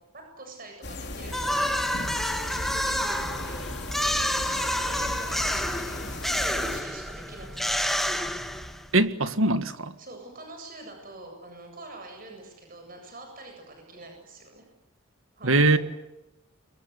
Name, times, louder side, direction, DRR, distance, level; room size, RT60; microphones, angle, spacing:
voice 1, 0.1-2.3 2.8-7.9 10.0-14.7 15.4-15.8, right 2 dB, 40° right, 7.9 m, -45 dB
sound 1, 0.8-6.8, left 2 dB, 50° left, 3.6 m, -37 dB
sound 2, 1.3-9.0, equal, ahead, 1.7 m, -29 dB
voice 2, 8.9-9.9 15.4-15.8, right 2 dB, 70° right, 1.8 m, -21 dB
30.0 x 23.5 x 8.2 m
head